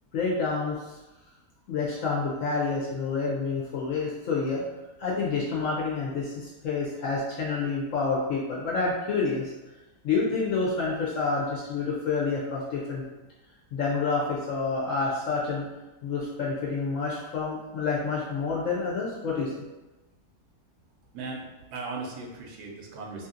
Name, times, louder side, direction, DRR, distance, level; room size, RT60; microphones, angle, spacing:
voice 1, 0.1-1.0 1.7-4.6 5.0-9.5 10.0-13.0 13.7-15.7 16.0-19.6, left 4 dB, 65° left, -4 dB, 0.8 m, -28 dB
voice 2, 21.1-23.3, right 3 dB, 80° right, 0 dB, 1.1 m, -38 dB
2.7 x 2.7 x 2.5 m, 1.0 s
omnidirectional pair, 1.7 m